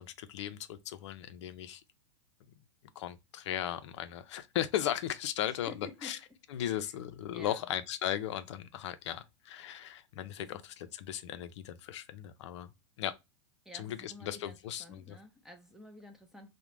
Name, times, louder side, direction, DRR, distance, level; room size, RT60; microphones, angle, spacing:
voice 1, 0.0-1.8 3.0-5.7 6.0-6.2 6.5-12.7 13.0-13.1 13.7-15.2, left 11 dB, 65° left, 0.4 m, -37 dB
voice 2, 5.5-6.2 6.6-6.9 7.3-7.7 10.5-10.6 13.6-16.5, left 1 dB, 5° right, 0.5 m, -51 dB
2.4 x 2.1 x 3.0 m
hypercardioid pair, 115°, 16 cm